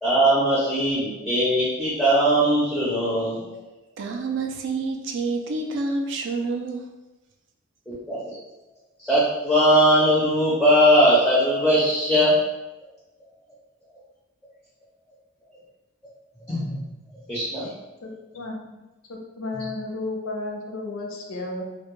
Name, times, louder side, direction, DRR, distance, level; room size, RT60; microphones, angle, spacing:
voice 1, 0.0-3.6 7.9-8.2 9.0-12.3 16.5-16.8 17.3-17.7 19.6-19.7, equal, ahead, -9 dB, 0.5 m, -20 dB
voice 2, 4.0-6.8, right 3 dB, 60° right, 3 dB, 0.3 m, -28 dB
voice 3, 18.0-18.8 19.1-21.6, left 2 dB, 70° left, 0 dB, 0.5 m, -33 dB
2.2 x 2.1 x 3.0 m, 1.0 s
head